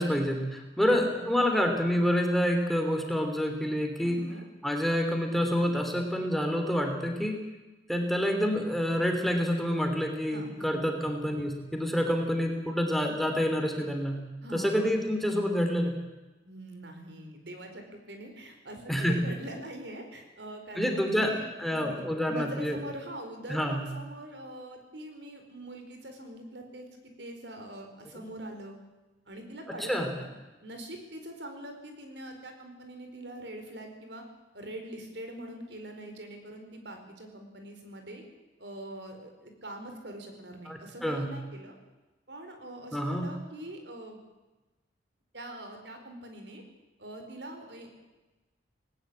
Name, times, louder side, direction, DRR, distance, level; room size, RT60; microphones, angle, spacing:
voice 1, 0.0-4.2 4.6-7.4 7.9-14.2 14.5-16.0 18.9-19.2 20.8-21.3 21.6-22.8 23.5-23.9 29.7-30.1 40.7-41.3 42.9-43.3, equal, ahead, 3 dB, 3.0 m, -28 dB
voice 2, 0.8-1.3 4.0-4.4 10.3-10.7 14.4-14.9 16.4-28.8 29.3-30.3 30.6-34.2 34.5-38.2 38.6-41.8 42.3-44.2 45.3-46.6 47.0-48.0, right 1 dB, 70° right, 5 dB, 4.7 m, -43 dB
19.0 x 18.5 x 8.7 m, 1.1 s
head